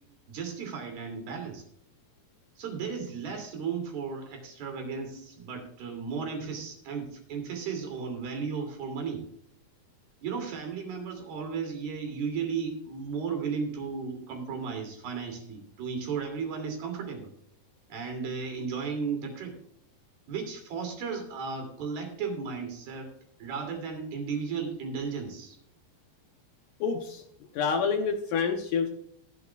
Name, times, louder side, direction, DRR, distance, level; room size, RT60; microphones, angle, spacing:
voice 1, 0.3-1.6 2.6-9.2 10.2-17.3 17.9-19.6 20.3-23.1 23.4-25.6, right 5 dB, 65° right, 4 dB, 4.5 m, -35 dB
voice 2, 26.8-27.2 27.5-28.9, left 6 dB, 80° left, 3 dB, 1.9 m, -27 dB
16.5 x 12.0 x 2.4 m, 0.69 s
omnidirectional pair, 4.9 m